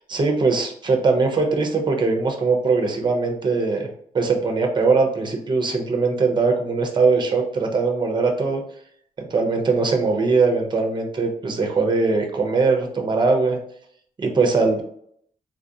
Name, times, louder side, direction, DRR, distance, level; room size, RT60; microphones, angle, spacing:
voice 1, 0.1-3.9 4.1-8.6 9.3-13.6 14.2-14.8, right 4 dB, 30° right, 3 dB, 0.6 m, -21 dB
3.7 x 2.4 x 2.6 m, 0.67 s
wide cardioid pair, 160°, 15 cm